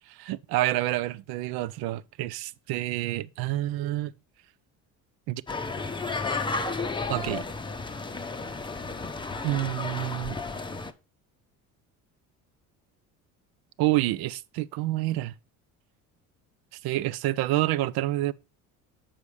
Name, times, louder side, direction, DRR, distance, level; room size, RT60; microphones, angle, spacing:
voice 1, 0.1-4.1 5.3-5.4 7.1-7.4 9.4-10.4 13.8-15.3 16.8-18.3, right 16 dB, 60° right, 0.6 m, -28 dB
sound 1, 5.5-10.9, left 3 dB, 10° left, 0.7 m, -32 dB
6.8 x 5.6 x 4.9 m
hypercardioid pair, 70°, 43 cm